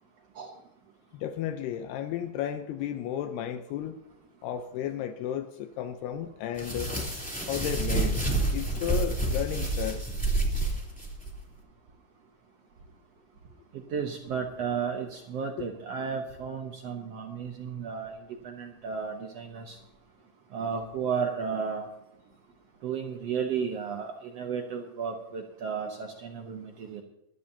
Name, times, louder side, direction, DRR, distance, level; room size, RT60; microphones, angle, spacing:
voice 1, 1.1-4.0 4.4-6.9 7.5-10.0, left 10 dB, 80° left, 7 dB, 2.8 m, -33 dB
sound 1, 6.6-11.3, right 2 dB, ahead, 2.8 m, -29 dB
voice 2, 13.7-18.1 18.4-19.8 20.5-21.9 22.8-27.0, right 6 dB, 80° right, 2 dB, 1.4 m, -33 dB
22.5 x 12.5 x 2.8 m, 0.90 s
omnidirectional pair, 4.7 m